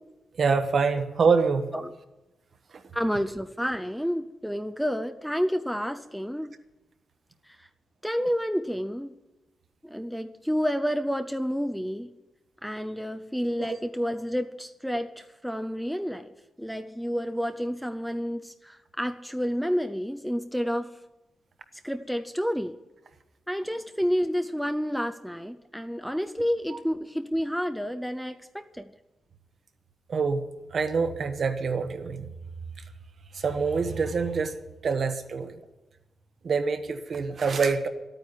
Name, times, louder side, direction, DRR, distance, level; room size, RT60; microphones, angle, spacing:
voice 1, 0.4-1.7 13.6-13.8 26.7-26.8 30.1-30.4 30.7-32.3 33.3-34.6 34.8-35.6 36.4-37.9, right 5 dB, 50° right, 9 dB, 1.2 m, -25 dB
voice 2, 2.9-6.6 8.0-9.1 9.8-12.1 12.6-16.3 16.6-20.9 21.8-22.8 23.5-28.9, equal, ahead, 8 dB, 0.5 m, -29 dB
12.5 x 9.2 x 9.7 m, 1.0 s
wide cardioid pair, 155°, 0 cm